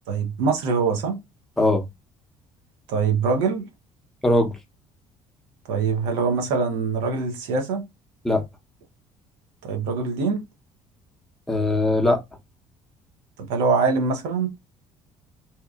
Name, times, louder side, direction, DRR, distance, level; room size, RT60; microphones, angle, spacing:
voice 1, 0.1-1.2 2.9-3.7 5.7-7.8 9.6-10.4 13.5-14.5, right 5 dB, 65° right, 0.9 m, -23 dB
voice 2, 11.5-12.2, left 1 dB, ahead, 0.8 m, -20 dB
2.8 x 2.3 x 2.4 m
figure-of-eight pair, 55°, 17 cm